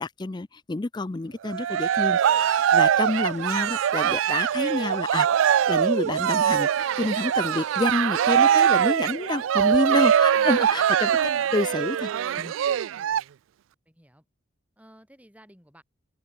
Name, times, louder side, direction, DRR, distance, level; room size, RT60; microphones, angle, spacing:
voice 1, 0.0-12.1 12.4-12.5, left 2 dB, 20° left, 0.4 m, -28 dB
Cheering, 1.4-13.2, right 9 dB, 75° right, 0.3 m, -22 dB
sound 1, 2.1-9.2 9.6-9.8, right 6 dB, 35° right, 4.7 m, -52 dB
voice 2, 13.9-14.3 14.8-15.8, equal, 5° right, 7.4 m, -54 dB
open air
head